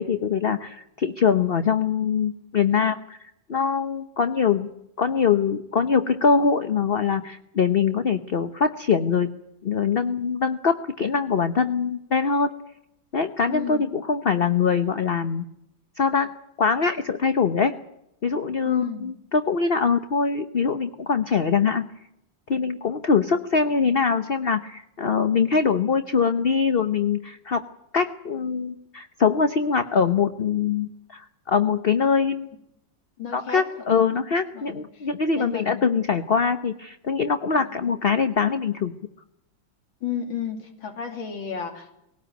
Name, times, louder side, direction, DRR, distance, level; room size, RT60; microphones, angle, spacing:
voice 1, 0.0-3.2 3.5-4.7 5.0-9.3 9.6-12.5 13.1-15.4 16.0-16.3 16.6-17.7 18.2-21.9 22.5-27.6 27.9-32.5 33.3-38.9, left 5 dB, 45° left, 9 dB, 0.8 m, -23 dB
voice 2, 13.5-13.8 18.6-19.1 33.2-33.6 34.5-35.1 35.4-35.8 37.6-37.8 40.0-41.9, left 7 dB, 80° left, 5 dB, 3.5 m, -32 dB
20.0 x 18.5 x 9.1 m, 0.80 s
omnidirectional pair, 2.1 m